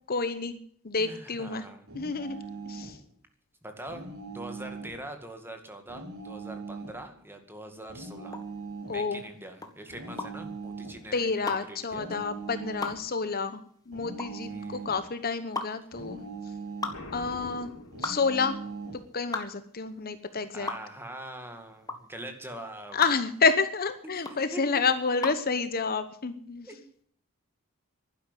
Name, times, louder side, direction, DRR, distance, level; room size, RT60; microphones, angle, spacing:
voice 1, 0.1-0.5 0.8-1.6 1.9-3.0 8.9-9.2 11.1-13.6 13.9-16.2 17.1-17.7 18.0-18.6 19.1-20.7 22.9-26.7, left 4 dB, 40° left, 11 dB, 1.0 m, -29 dB
voice 2, 1.0-1.9 2.3-2.4 3.6-8.4 8.9-12.2 14.4-14.9 20.5-23.0 24.0-24.1 24.5-24.6 26.6-26.8, right 1 dB, 10° right, 5 dB, 2.1 m, -43 dB
sound 1, 1.9-3.0 3.9-5.0 5.9-7.0 7.9-9.0 9.9-11.0 11.9-13.0 13.9-15.0 15.9-17.0 17.9-19.0, right 4 dB, 70° right, 5.1 m, -40 dB
sound 2, 8.3-25.5, left 3 dB, 15° left, 1.6 m, -38 dB
Boom, 16.9-18.8, left 1 dB, 85° left, 4.0 m, -44 dB
12.0 x 10.5 x 9.9 m, 0.62 s
head